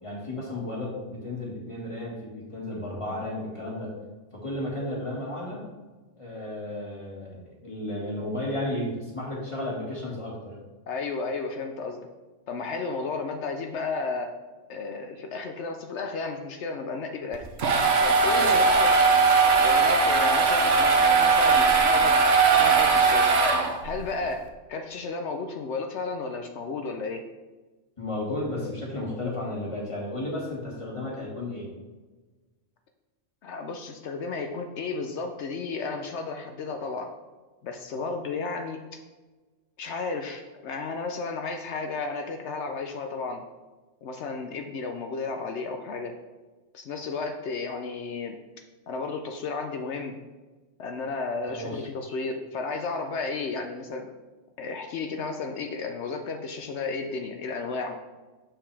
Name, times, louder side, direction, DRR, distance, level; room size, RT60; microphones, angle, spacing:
voice 1, 0.0-3.9 4.3-5.6 6.2-10.6 28.0-31.7 51.4-51.9, left 1 dB, 25° left, -4 dB, 1.8 m, -33 dB
voice 2, 10.9-12.0 12.5-14.3 14.7-17.5 18.0-19.0 19.6-22.2 22.6-23.4 23.8-24.4 24.7-27.2 33.4-37.1 37.6-38.8 39.8-43.4 44.0-46.1 46.7-48.4 48.9-50.2 50.8-54.1 54.6-58.0, left 4 dB, 65° left, 5 dB, 0.9 m, -33 dB
sound 1, 17.3-24.0, right 4 dB, 60° right, 1.0 m, -20 dB
6.9 x 5.8 x 3.3 m, 1.3 s
omnidirectional pair, 1.3 m